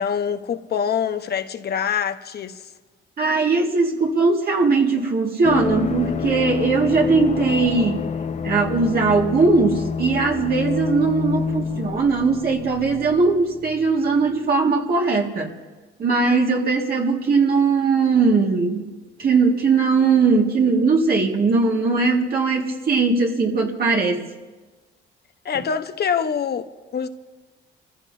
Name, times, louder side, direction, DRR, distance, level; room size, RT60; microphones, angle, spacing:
voice 1, 0.0-2.6 25.4-27.1, left 7 dB, 55° left, 1.1 m, -25 dB
voice 2, 3.2-8.0 8.4-15.5 16.0-18.9 19.2-24.3, right 4 dB, 50° right, 2.0 m, -19 dB
sound 1, 5.4-14.0 14.2-14.3, left 6 dB, 35° left, 0.7 m, -28 dB
29.0 x 15.0 x 2.8 m
cardioid pair, 90°, 20 cm